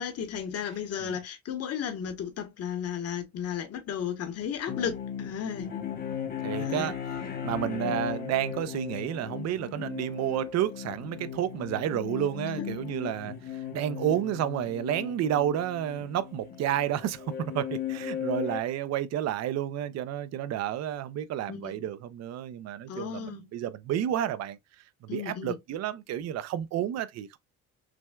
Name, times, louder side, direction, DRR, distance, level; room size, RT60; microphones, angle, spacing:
voice 1, 0.0-5.7 6.6-6.9 7.8-8.0 12.6-12.7 21.5-21.9 22.9-23.5 25.1-25.6, left 8 dB, 55° left, 1.0 m, -34 dB
sound 1, 4.7-18.6, left 9 dB, 30° left, 0.7 m, -37 dB
voice 2, 6.4-6.9 7.4-17.3 17.5-24.6 25.0-27.4, right 11 dB, 60° right, 0.5 m, -31 dB
5.9 x 2.2 x 2.2 m
cardioid pair, 145°, 30 cm